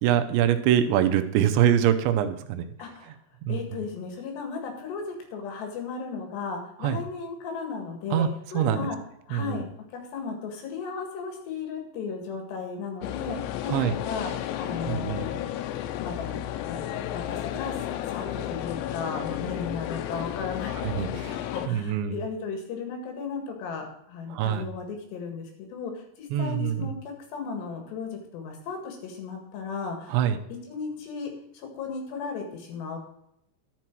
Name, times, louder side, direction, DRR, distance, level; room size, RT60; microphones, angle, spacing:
voice 1, 0.0-2.7 3.5-3.6 6.8-7.0 8.1-8.3 8.5-8.9 9.3-9.6 13.7-14.0 14.9-15.3 20.8-22.2 24.3-24.7 26.3-26.9 30.1-30.4, right 10 dB, 85° right, 8 dB, 3.0 m, -24 dB
voice 2, 2.8-3.2 3.5-9.0 9.3-9.6 9.9-15.5 16.0-16.4 16.7-20.7 21.5-30.2 30.5-33.0, left 5 dB, 70° left, 3 dB, 3.8 m, -35 dB
sound 1, 13.0-21.7, left 12 dB, 85° left, 3.0 m, -33 dB
11.5 x 7.4 x 4.6 m, 0.76 s
omnidirectional pair, 5.2 m